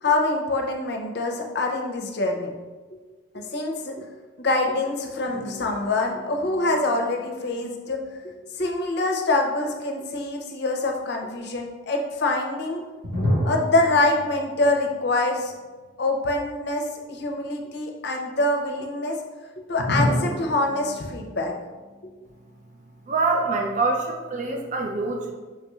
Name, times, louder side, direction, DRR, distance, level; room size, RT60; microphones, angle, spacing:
voice 1, 0.0-2.5 3.3-4.0 4.4-12.8 13.4-15.5 16.0-19.2 19.7-21.5, left 2 dB, 55° left, 2 dB, 0.6 m, -25 dB
sound 1, 5.2-8.5 13.0-16.1 16.4-16.5 19.8-23.1, left 1 dB, 70° right, 1.4 m, -31 dB
voice 2, 23.1-25.3, right 3 dB, 35° right, 1 dB, 0.4 m, -25 dB
5.8 x 3.0 x 2.3 m, 1.3 s
head